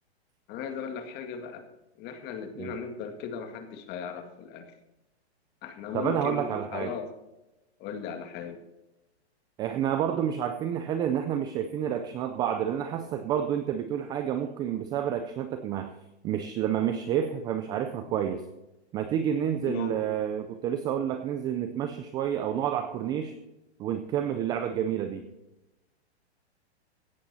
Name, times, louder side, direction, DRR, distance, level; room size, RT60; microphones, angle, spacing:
voice 1, 0.5-1.7 2.0-4.7 5.6-7.1 7.8-8.6 19.6-20.0, left 7 dB, 30° left, 7 dB, 2.0 m, -37 dB
voice 2, 5.9-6.9 9.6-15.9 16.2-18.4 18.9-23.4 23.8-25.3, right 9 dB, 10° right, 9 dB, 0.4 m, -29 dB
16.0 x 11.5 x 4.1 m, 0.98 s
hypercardioid pair, 145°, 33 cm